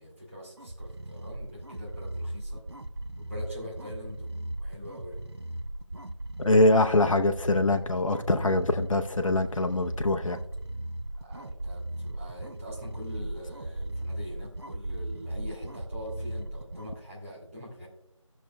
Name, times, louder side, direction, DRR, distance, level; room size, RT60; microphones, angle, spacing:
voice 1, 0.0-2.6 3.2-5.2 11.2-17.9, equal, 25° right, -5 dB, 2.0 m, -43 dB
sound 1, 0.6-17.0, right 1 dB, 50° right, 0.5 m, -37 dB
voice 2, 6.4-10.4, left 2 dB, 80° left, 6 dB, 0.7 m, -23 dB
14.5 x 6.4 x 2.2 m, 0.77 s
figure-of-eight pair, 175°, 17 cm